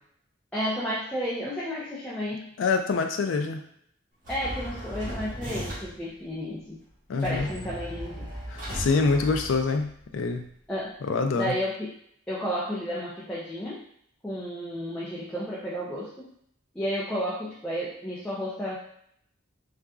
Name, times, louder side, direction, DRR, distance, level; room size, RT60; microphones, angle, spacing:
voice 1, 0.5-2.5 4.3-6.8 7.2-8.3 10.7-11.0 11.3-11.9 12.3-13.9 14.2-16.3 16.7-18.8, equal, 5° left, -8 dB, 0.5 m, -32 dB
voice 2, 2.6-3.6 7.1-7.5 8.5-10.5 11.1-11.5, left 4 dB, 75° left, 6 dB, 0.4 m, -25 dB
sound 1, 4.2-6.1 7.2-10.0, equal, 45° right, 1.3 m, -37 dB
3.8 x 2.4 x 2.3 m, 0.68 s
head